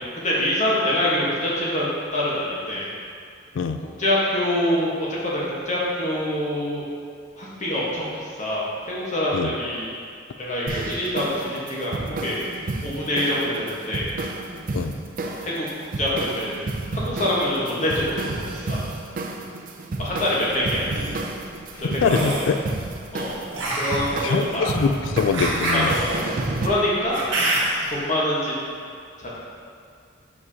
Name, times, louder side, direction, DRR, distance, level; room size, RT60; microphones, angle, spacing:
voice 1, 0.2-2.9 4.0-6.9 7.3-9.9 10.4-12.4 12.8-14.1 15.4-15.7 16.0-16.6 16.9-18.8 20.0-20.8 21.9-22.5 23.1-23.4 23.7-24.7 25.7-26.3 26.6-27.2 27.9-28.5 29.2-29.3, left 1 dB, 40° left, -6 dB, 1.3 m, -25 dB
sound 1, 10.7-26.7, right 2 dB, 45° right, 0.5 m, -31 dB
sound 2, 20.6-21.1 22.0-22.5 23.5-27.9, right 1 dB, 70° right, 1.4 m, -27 dB
voice 2, 22.0-22.6 24.2-25.9, left 5 dB, 80° left, 8 dB, 0.3 m, -23 dB
7.2 x 4.7 x 2.8 m, 2.3 s
head